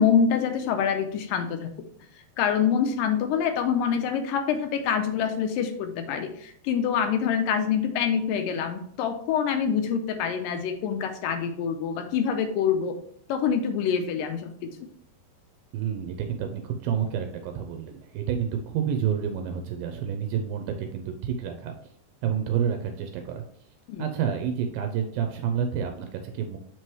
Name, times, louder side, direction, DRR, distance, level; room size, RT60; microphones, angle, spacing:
voice 1, 0.0-1.9 2.4-13.0 13.3-14.9 23.9-24.1, left 7 dB, 80° left, 7 dB, 2.2 m, -26 dB
voice 2, 15.7-21.7 22.2-23.4 24.0-26.6, right 8 dB, 85° right, 5 dB, 2.3 m, -29 dB
7.3 x 4.5 x 3.1 m, 0.64 s
omnidirectional pair, 4.1 m